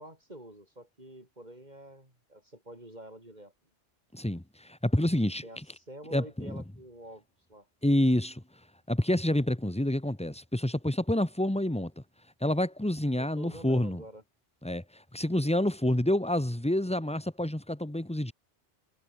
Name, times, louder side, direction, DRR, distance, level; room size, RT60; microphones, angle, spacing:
voice 1, 0.0-3.5 5.4-7.7 13.2-14.2, right 1 dB, 40° right, 6.7 m, -47 dB
voice 2, 4.1-5.4 6.1-6.6 7.8-8.4 8.9-12.0 12.4-14.0 14.6-18.3, left 1 dB, 5° left, 1.3 m, -28 dB
omnidirectional pair, 1.2 m